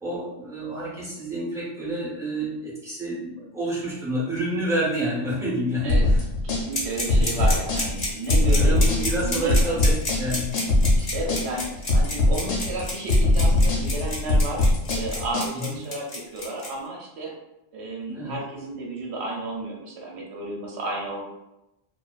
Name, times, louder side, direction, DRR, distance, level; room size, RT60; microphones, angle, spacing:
voice 1, 0.0-6.2 7.1-7.4 8.3-10.6 15.5-15.8 18.1-18.4, right 1 dB, 5° right, -8 dB, 0.5 m, -29 dB
sound 1, 5.9-15.5, left 1 dB, 65° left, 0.9 m, -21 dB
voice 2, 6.4-8.8 9.2-9.8 11.0-17.3 17.7-21.2, right 2 dB, 65° right, -1 dB, 0.9 m, -32 dB
sound 2, 6.7-16.7, left 2 dB, 40° left, 0.7 m, -30 dB
2.5 x 2.4 x 2.3 m, 0.90 s
omnidirectional pair, 1.3 m